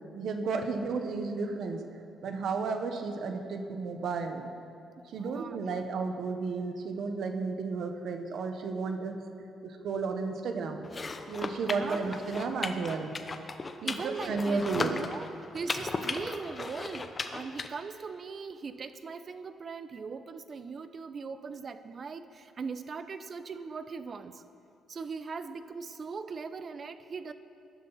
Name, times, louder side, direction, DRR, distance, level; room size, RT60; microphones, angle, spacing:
voice 1, 0.1-1.8 2.2-4.5 5.0-9.2 9.6-10.9 11.3-13.1 13.8-14.9, right 4 dB, 70° right, 5 dB, 1.4 m, -33 dB
voice 2, 5.1-5.6 11.7-12.2 13.8-24.4 24.9-27.3, right 5 dB, 45° right, 11 dB, 0.8 m, -40 dB
sound 1, 10.8-17.7, left 3 dB, 30° left, 0.9 m, -36 dB
20.5 x 11.0 x 4.3 m, 2.6 s
cardioid pair, 90°, 0 cm